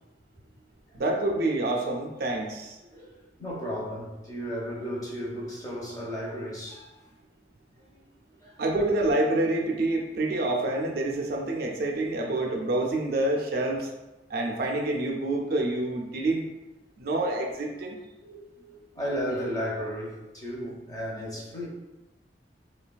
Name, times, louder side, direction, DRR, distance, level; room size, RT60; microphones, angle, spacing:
voice 1, 0.9-2.8 8.6-13.9 14.3-16.5 17.0-18.0, right 2 dB, 55° right, 0 dB, 0.4 m, -27 dB
voice 2, 2.9-7.1 7.8-8.1 8.4-8.6 18.2-21.7, equal, 20° left, -5 dB, 0.6 m, -34 dB
3.1 x 2.2 x 2.2 m, 1.0 s
head